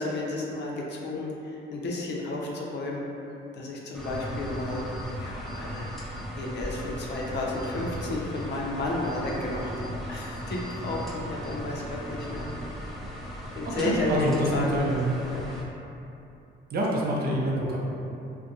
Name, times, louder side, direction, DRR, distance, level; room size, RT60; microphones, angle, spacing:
voice 1, 0.0-3.0 3.5-4.8 5.2-5.9 6.3-12.4 13.5-14.9 15.3-15.5, left 2 dB, 60° left, -2 dB, 0.5 m, -32 dB
sound 1, 3.9-15.6, equal, ahead, 0.4 m, -37 dB
voice 2, 13.8-15.2 16.7-17.8, right 1 dB, 50° right, -4 dB, 0.5 m, -26 dB
2.4 x 2.1 x 2.7 m, 2.8 s
cardioid pair, 90°, 20 cm